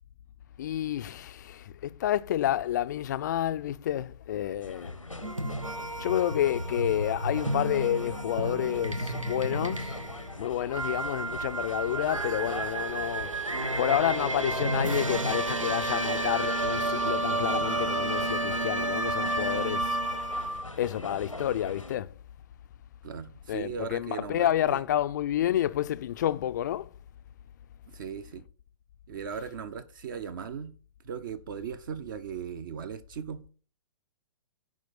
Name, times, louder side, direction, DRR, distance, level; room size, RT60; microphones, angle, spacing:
voice 1, 0.6-4.9 6.0-10.0 10.4-13.3 13.8-20.0 20.8-22.1 23.5-26.9, left 11 dB, 35° left, 0.4 m, -29 dB
sound 1, 4.6-22.0, left 2 dB, 90° left, 0.8 m, -42 dB
sound 2, 5.2-20.6, right 2 dB, 85° right, 0.9 m, -31 dB
voice 2, 23.0-24.8 27.9-28.4 29.1-30.7 31.0-33.4, right 7 dB, 40° right, 0.6 m, -38 dB
11.0 x 4.7 x 4.1 m
figure-of-eight pair, 120°, 16 cm